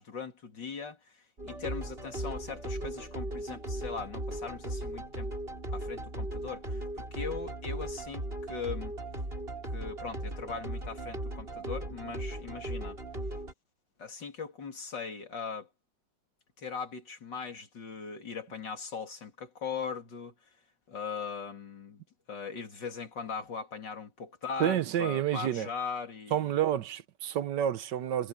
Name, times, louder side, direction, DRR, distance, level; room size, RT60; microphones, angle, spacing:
voice 1, 0.0-5.3 5.7-8.2 8.5-8.9 9.6-13.0 14.0-15.7 16.6-20.3 20.9-22.0 22.3-26.5, left 5 dB, 70° left, 3.5 m, -39 dB
sound 1, 1.4-13.5, right 1 dB, 30° right, 5.6 m, -37 dB
voice 2, 24.6-25.7 26.3-28.3, right 10 dB, 70° right, 1.4 m, -29 dB
omnidirectional pair, 2.0 m